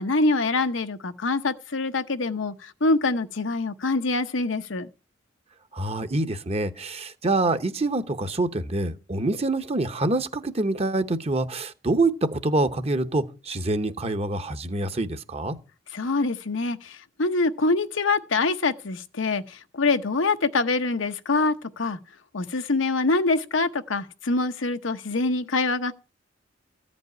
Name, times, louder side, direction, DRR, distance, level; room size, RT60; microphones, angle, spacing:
voice 1, 0.0-4.9 15.9-22.0 22.3-25.9, left 3 dB, 85° left, 1.0 m, -25 dB
voice 2, 5.7-15.6, right 2 dB, 35° right, 1.0 m, -26 dB
14.5 x 5.3 x 9.5 m
head